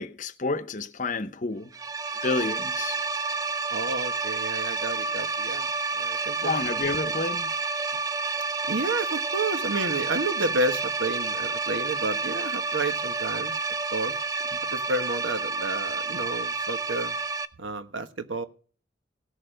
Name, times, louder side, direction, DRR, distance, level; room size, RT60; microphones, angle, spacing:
voice 1, 0.0-1.7 2.2-3.0 6.4-7.5, left 3 dB, 40° left, 0.8 m, -29 dB
sound 1, 1.7-17.5, right 4 dB, 20° right, 0.5 m, -29 dB
voice 2, 3.7-6.6 7.0-7.1 8.7-13.5 13.9-14.2 14.7-17.2 17.6-18.4, right 2 dB, 80° right, 1.2 m, -31 dB
17.5 x 6.8 x 5.0 m
head